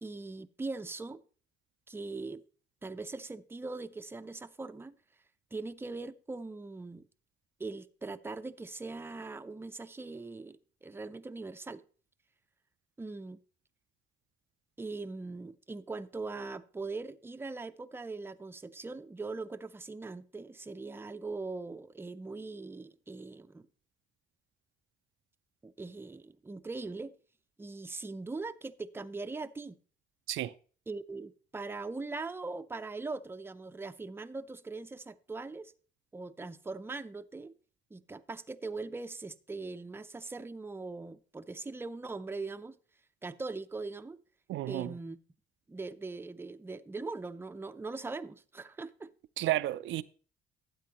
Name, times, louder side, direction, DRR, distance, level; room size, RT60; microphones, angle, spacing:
voice 1, 0.0-1.2 1.9-2.4 2.8-5.0 5.5-7.0 7.6-11.8 13.0-13.4 14.8-23.7 25.6-27.1 27.6-29.8 30.9-35.7 36.1-37.5 37.9-42.8 43.2-44.2 44.7-45.2 45.7-49.1, right 3 dB, 10° right, 0.5 m, -41 dB
voice 2, 44.5-44.9 49.4-50.0, right 15 dB, 75° right, 0.4 m, -32 dB
12.5 x 8.5 x 2.9 m
cardioid pair, 90°, 20 cm